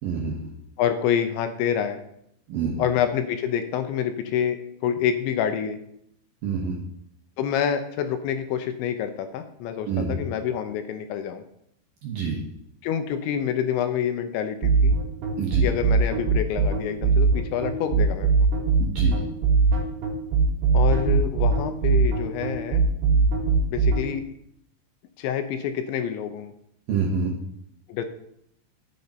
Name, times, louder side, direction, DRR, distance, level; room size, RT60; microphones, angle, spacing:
voice 1, 0.0-0.5 2.5-2.8 6.4-6.8 9.9-10.2 12.0-12.4 15.4-15.7 18.8-19.2 26.9-27.3, right 5 dB, 65° right, -1 dB, 2.3 m, -27 dB
voice 2, 0.8-2.0 2.8-5.8 7.4-11.4 12.8-15.0 15.6-18.3 20.7-22.8 23.7-24.2 25.2-26.5 27.9-28.1, left 9 dB, 80° left, 8 dB, 3.0 m, -27 dB
sound 1, 14.6-24.0, right 4 dB, 85° right, 4.4 m, -20 dB
10.5 x 8.6 x 4.3 m, 0.73 s
omnidirectional pair, 5.6 m